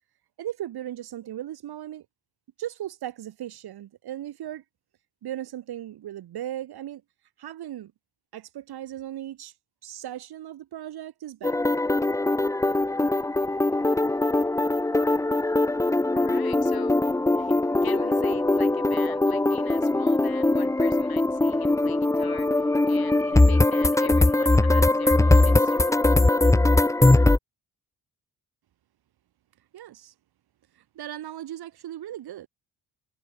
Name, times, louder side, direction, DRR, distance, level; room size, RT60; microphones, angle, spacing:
voice 1, 0.4-2.1 2.6-4.6 5.2-7.0 7.4-7.9 8.3-9.5 9.8-11.7 29.7-30.1 30.8-32.5, right 12 dB, 75° right, 3.5 m, -37 dB
sound 1, 11.4-27.4, left 2 dB, 10° left, 0.7 m, -21 dB
voice 2, 16.1-17.0 17.3-26.0, left 11 dB, 70° left, 4.4 m, -43 dB
cardioid pair, 95°, 38 cm